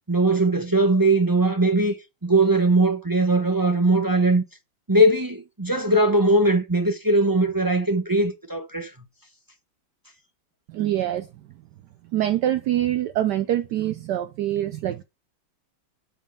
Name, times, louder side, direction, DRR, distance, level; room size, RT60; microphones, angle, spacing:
voice 1, 0.1-2.0 2.2-4.4 4.9-8.9, right 2 dB, 25° right, 0.4 m, -20 dB
voice 2, 10.7-11.3 12.1-15.0, right 12 dB, 70° right, 1.1 m, -24 dB
8.1 x 3.9 x 5.3 m
omnidirectional pair, 2.1 m